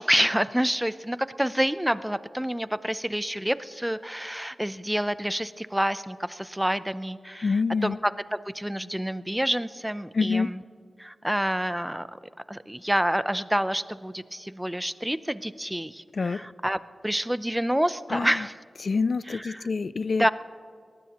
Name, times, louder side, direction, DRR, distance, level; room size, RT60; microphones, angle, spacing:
voice 1, 0.0-10.6 11.0-12.1 12.5-18.5 19.3-19.7 20.2-20.3, equal, 5° right, 14 dB, 0.5 m, -28 dB
voice 2, 7.4-8.0 10.1-10.5 16.1-16.4 18.1-18.5 18.8-20.3, left 4 dB, 65° left, 17 dB, 0.4 m, -26 dB
22.0 x 19.5 x 3.0 m, 2.2 s
wide cardioid pair, 65°, 0 cm